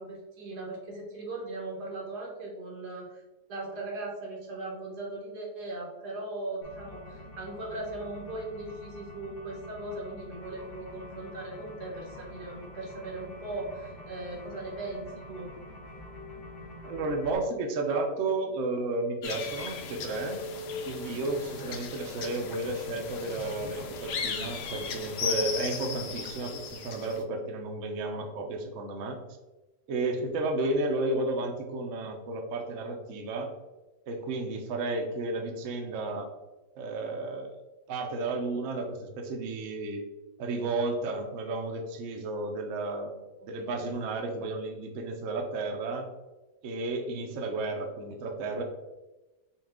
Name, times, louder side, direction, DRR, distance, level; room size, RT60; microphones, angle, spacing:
voice 1, 0.0-3.2 3.5-15.5 43.4-43.9, right 2 dB, 85° right, -1 dB, 1.7 m, -39 dB
sound 1, 6.6-17.3, left 1 dB, 40° left, 1.0 m, -46 dB
voice 2, 16.8-20.4 20.9-29.2 29.9-33.5 34.1-36.3 36.8-37.5 37.9-40.0 40.4-43.2 43.5-46.1 46.6-48.6, right 2 dB, 60° right, 3 dB, 0.9 m, -32 dB
sound 2, 19.2-27.2, left 5 dB, 80° left, 0.5 m, -37 dB
5.6 x 2.4 x 3.5 m, 1.1 s
omnidirectional pair, 1.7 m